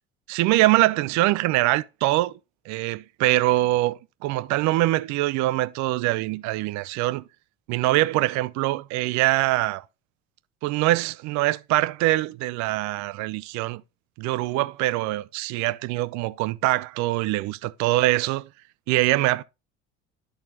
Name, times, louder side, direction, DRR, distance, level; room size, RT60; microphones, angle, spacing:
voice 1, 0.3-2.4 2.7-7.2 7.7-9.8 10.6-13.8 14.2-18.5 18.9-19.4, right 18 dB, 55° right, 0.5 m, -23 dB
12.5 x 4.3 x 2.6 m
figure-of-eight pair, 60°, 35 cm